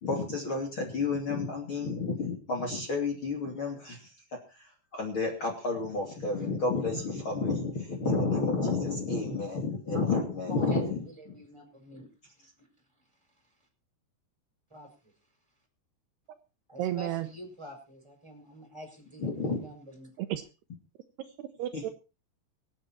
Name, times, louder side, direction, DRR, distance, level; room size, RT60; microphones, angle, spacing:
voice 1, 0.0-4.1 4.9-11.0 19.2-19.6 21.7-21.8, left 3 dB, 35° left, 0 dB, 2.9 m, -30 dB
voice 2, 10.7-12.1 12.4-12.7 14.7-15.1 16.7-20.1, equal, 5° right, 5 dB, 4.4 m, -47 dB
voice 3, 16.8-17.3 20.2-20.4 21.4-21.9, right 13 dB, 75° right, 9 dB, 2.9 m, -32 dB
24.0 x 8.9 x 4.4 m, 0.32 s
omnidirectional pair, 5.0 m